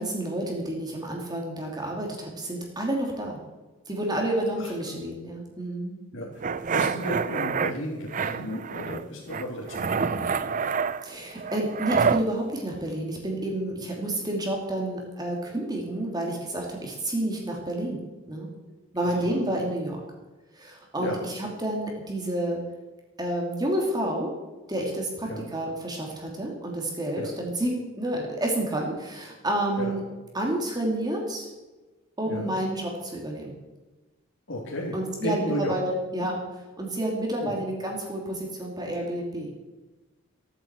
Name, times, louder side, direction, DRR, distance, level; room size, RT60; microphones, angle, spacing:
voice 1, 0.0-3.4 3.9-6.0 11.0-18.0 18.3-18.5 18.9-20.0 20.5-22.6 23.2-24.3 24.7-30.0 30.3-31.5 32.2-33.5 34.9-36.4 36.8-39.5, right 1 dB, 20° right, 0 dB, 2.5 m, -29 dB
sound 1, 6.4-7.7 8.1-9.0 9.3-12.2, right 5 dB, 35° right, 0.4 m, -27 dB
voice 2, 6.7-10.7 19.0-19.4 21.0-21.2 25.2-25.5 27.2-27.3 28.1-28.2 29.8-29.9 32.2-32.5 34.5-35.0 35.2-35.8 36.2-36.3 37.4-37.6, left 1 dB, 60° left, -3 dB, 2.7 m, -33 dB
16.0 x 9.2 x 8.0 m, 1.2 s
head